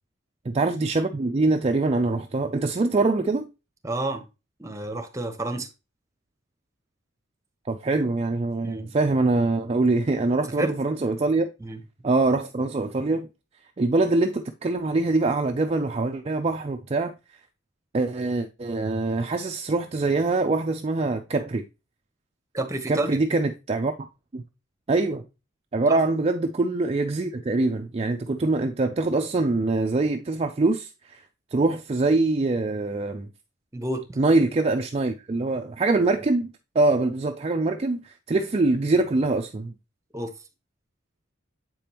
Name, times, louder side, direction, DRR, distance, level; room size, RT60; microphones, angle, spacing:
voice 1, 0.4-3.5 7.7-11.5 12.0-13.3 13.8-17.1 17.9-21.6 22.9-23.9 24.3-24.4 24.9-25.2 25.7-31.2 31.5-33.3 34.2-39.7, right 3 dB, 30° right, 0.4 m, -24 dB
voice 2, 3.8-4.2 4.6-5.7 8.6-8.9 10.6-10.7 11.6-11.8 22.5-23.2 25.9-26.0 33.7-34.2 40.1-40.3, right 2 dB, 15° right, 1.0 m, -30 dB
7.6 x 5.1 x 2.9 m
head